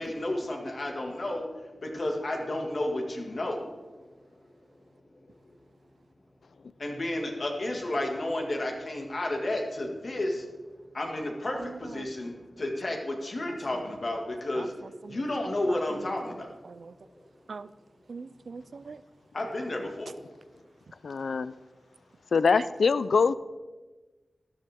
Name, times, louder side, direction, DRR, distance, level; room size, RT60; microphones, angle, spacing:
voice 1, 0.0-1.5 1.8-3.6 6.8-10.5 10.9-14.7 15.1-16.5 19.3-20.1, left 1 dB, 55° left, 1.9 m, -31 dB
voice 2, 11.6-12.0 14.6-14.7 15.0-15.2 16.6-16.9 17.5-17.7 18.1-19.0, right 4 dB, 75° right, 0.3 m, -42 dB
voice 3, 21.0-21.5 22.3-23.3, left 5 dB, 90° left, 0.4 m, -23 dB
12.5 x 11.0 x 3.6 m
wide cardioid pair, 65°, 0 cm